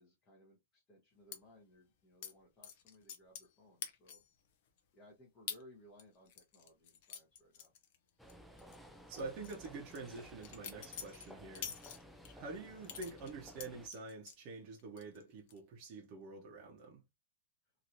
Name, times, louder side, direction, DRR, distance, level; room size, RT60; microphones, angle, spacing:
voice 1, 0.0-4.2 4.9-7.7, left 1 dB, 15° left, 1.0 m, -62 dB
sound 1, 1.3-1.4 2.2-2.3 2.6-3.5 3.8-4.3 4.8-4.9 5.5-5.6 6.0-8.3 8.6-8.8 9.2-12.3 12.8-14.4 14.8-15.2 15.5-15.9, left 8 dB, 45° left, 0.6 m, -47 dB
sound 2, 8.2-13.9, equal, ahead, 0.3 m, -56 dB
voice 2, 9.1-11.7 12.3-17.0, right 3 dB, 30° right, 0.9 m, -47 dB
3.0 x 2.7 x 2.6 m
supercardioid pair, 170°, 0 cm